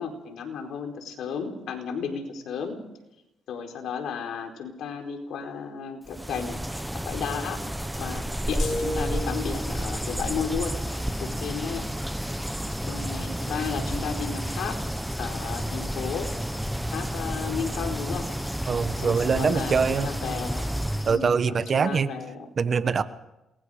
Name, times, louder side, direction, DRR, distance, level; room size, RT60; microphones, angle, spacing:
voice 1, 0.0-2.8 3.5-6.6 7.0-7.6 8.0-10.7 11.2-11.8 12.9-14.8 15.2-16.3 16.9-18.3 19.0-20.7 21.1-22.5, left 6 dB, 75° left, 4 dB, 4.4 m, -33 dB
sound 1, 6.1-21.2, equal, 5° right, 0.8 m, -31 dB
sound 2, 8.6-9.9, left 1 dB, 50° left, 8.0 m, -33 dB
sound 3, 9.1-21.2, left 3 dB, 30° left, 3.8 m, -44 dB
voice 2, 18.7-20.1 21.0-22.1 22.6-23.0, right 5 dB, 45° right, 12 dB, 1.3 m, -23 dB
28.0 x 21.5 x 5.1 m, 0.93 s
cardioid pair, 90°, 0 cm